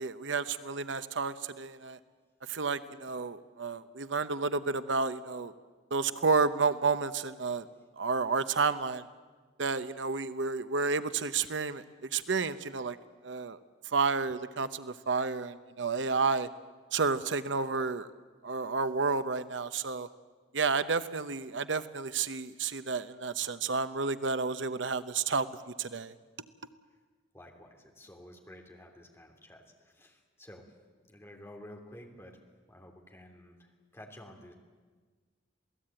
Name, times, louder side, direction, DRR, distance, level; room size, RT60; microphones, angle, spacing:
voice 1, 0.0-2.0 2.5-5.5 5.9-7.7 8.0-9.0 9.6-11.8 12.1-13.0 13.2-13.6 13.9-16.5 16.9-18.1 18.4-20.1 20.5-25.5 25.8-26.1, right 4 dB, 75° right, 13 dB, 0.9 m, -31 dB
voice 2, 27.3-30.6 31.0-32.4 32.7-34.5, left 1 dB, 15° left, 2 dB, 3.2 m, -51 dB
27.5 x 18.0 x 9.0 m, 1.4 s
head